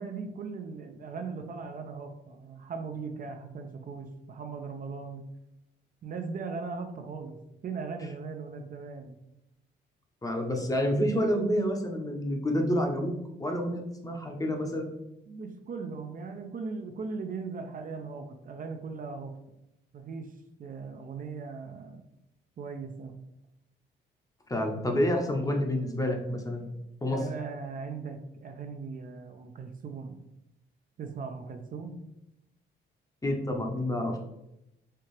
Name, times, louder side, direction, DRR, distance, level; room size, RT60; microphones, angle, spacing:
voice 1, 0.0-5.2 6.0-9.2 15.3-19.4 19.9-20.3 20.6-22.0 22.6-23.2 27.1-30.3 31.0-32.0, right 4 dB, 45° right, 5 dB, 0.5 m, -39 dB
voice 2, 10.2-13.1 13.4-14.9 24.5-26.7 27.0-27.2 33.2-34.2, equal, 15° left, 2 dB, 0.7 m, -28 dB
4.3 x 2.4 x 3.2 m, 0.87 s
cardioid pair, 90°, 20 cm